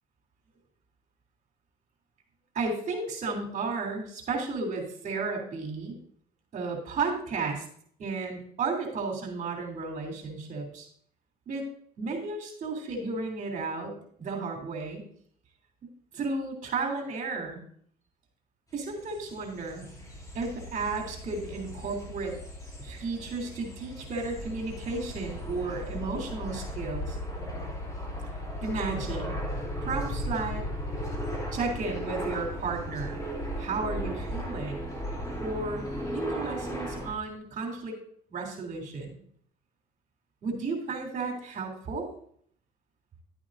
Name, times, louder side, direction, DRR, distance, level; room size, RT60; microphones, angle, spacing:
voice 1, 2.5-6.0 6.5-7.6 8.0-10.9 11.5-11.6 12.0-15.1 16.1-17.6 18.7-19.8 20.3-22.3 22.8-27.2 28.6-29.3 29.8-30.7 31.5-33.2 33.6-34.9 35.4-35.8 36.1-38.0 38.3-39.1 40.4-42.1, right 4 dB, 50° right, 1 dB, 3.1 m, -33 dB
sound 1, 18.8-37.1, equal, 20° left, 2.6 m, -36 dB
11.5 x 8.8 x 2.6 m, 0.62 s
cardioid pair, 110°, 17 cm